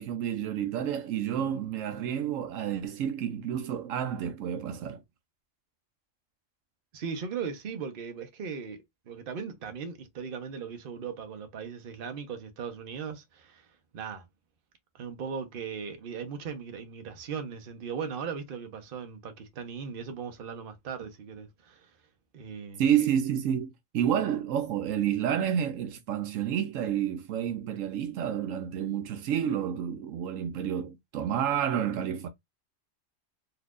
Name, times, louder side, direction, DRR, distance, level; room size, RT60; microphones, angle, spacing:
voice 1, 0.0-5.0 22.8-32.3, right 9 dB, 80° right, 1.0 m, -29 dB
voice 2, 6.9-13.7 13.9-14.2 14.9-21.9 22.3-22.8, right 6 dB, 50° right, 0.9 m, -38 dB
4.0 x 2.8 x 2.4 m
omnidirectional pair, 1.4 m